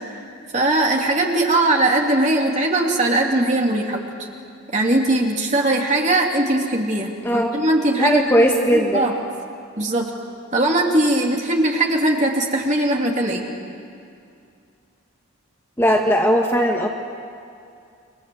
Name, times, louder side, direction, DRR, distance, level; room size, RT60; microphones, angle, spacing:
voice 1, 0.5-4.0 4.7-8.2 8.7-9.1 9.8-10.1 10.5-13.4, right 1 dB, 30° right, 0 dB, 3.1 m, -20 dB
voice 2, 8.0-9.1 15.8-16.9, equal, 10° left, 0 dB, 1.7 m, -18 dB
29.5 x 23.5 x 8.0 m, 2.4 s
head